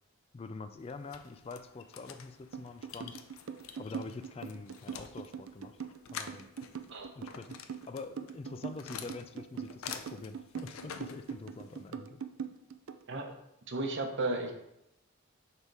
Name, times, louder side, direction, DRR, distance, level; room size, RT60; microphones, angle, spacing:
voice 1, 0.3-3.2 3.8-5.8 6.1-6.5 7.2-12.2, left 3 dB, 30° left, 9 dB, 0.3 m, -45 dB
sound 1, 0.8-11.9, left 7 dB, 90° left, 0.5 m, -48 dB
sound 2, 2.5-13.0, right 7 dB, 80° right, 0.4 m, -42 dB
voice 2, 13.7-14.6, right 2 dB, 60° right, 4 dB, 0.9 m, -34 dB
6.5 x 3.5 x 4.7 m, 0.85 s
head